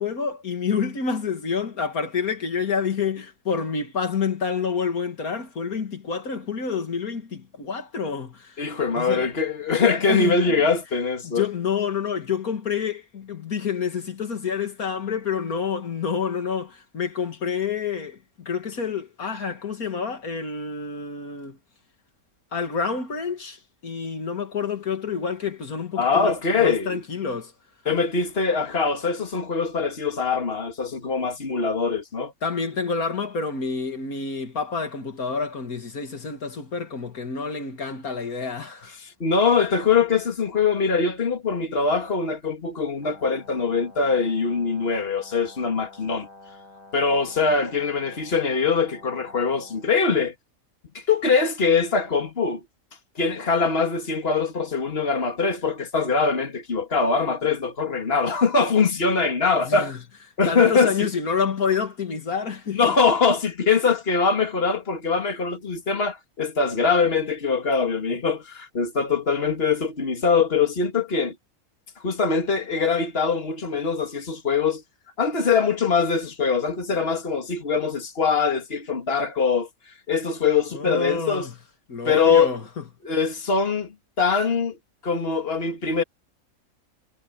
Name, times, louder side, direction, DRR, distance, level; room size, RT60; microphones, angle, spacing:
voice 1, 0.0-8.6 9.0-9.3 9.8-10.4 11.2-21.6 22.5-27.5 32.4-39.0 59.6-60.0 60.5-63.0 80.7-81.5 81.9-82.8, left 6 dB, 85° left, 2.6 m, -28 dB
voice 2, 8.6-11.5 26.0-27.0 27.9-32.3 39.0-46.3 46.9-50.3 50.9-52.6 53.2-59.9 60.4-61.1 62.7-71.4 72.0-74.8 75.2-79.7 80.1-81.5 82.0-82.5 83.0-83.9 84.2-84.8 85.0-86.0, left 5 dB, 45° left, 2.5 m, -23 dB
Brass instrument, 43.0-50.0, left 3 dB, 65° left, 6.9 m, -48 dB
omnidirectional pair, 1.5 m